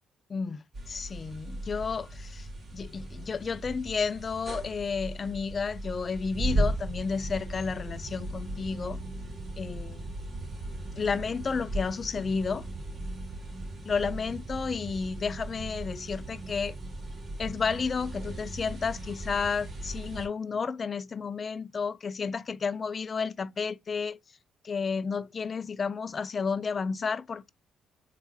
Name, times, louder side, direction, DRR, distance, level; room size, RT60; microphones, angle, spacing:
voice 1, 0.3-0.6 0.9-2.4 2.7-9.0 9.6-10.1 11.0-12.7 13.9-16.8 17.4-24.2 24.6-27.5, left 5 dB, 40° left, 0.3 m, -31 dB
sound 1, 0.7-20.3, right 1 dB, 40° right, 2.5 m, -37 dB
4.0 x 3.8 x 2.8 m
cardioid pair, 90°, 0 cm